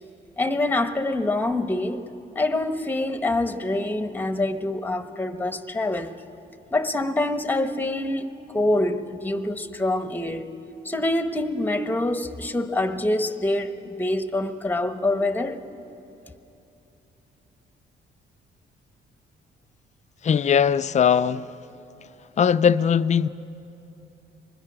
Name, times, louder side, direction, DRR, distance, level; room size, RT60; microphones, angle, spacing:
voice 1, 0.4-2.1 2.3-6.1 6.7-10.5 10.8-15.6, left 2 dB, 10° left, 1.0 m, -25 dB
voice 2, 20.2-21.5 22.4-23.3, left 7 dB, 35° left, 0.5 m, -20 dB
24.5 x 21.0 x 6.1 m
cardioid pair, 90°, 20 cm